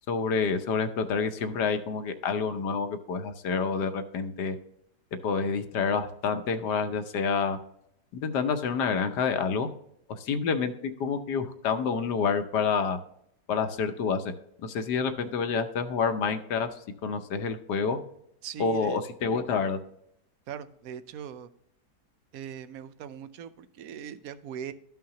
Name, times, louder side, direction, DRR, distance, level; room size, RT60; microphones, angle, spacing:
voice 1, 0.1-4.6 5.2-7.6 8.1-9.7 10.2-13.0 13.5-14.2 14.6-16.7 17.0-18.0 18.6-19.8, left 5 dB, 75° left, 8 dB, 1.4 m, -28 dB
voice 2, 18.4-19.0 20.5-21.5 22.3-24.7, right 8 dB, 65° right, 13 dB, 0.9 m, -40 dB
13.0 x 5.7 x 2.9 m, 0.72 s
omnidirectional pair, 1.9 m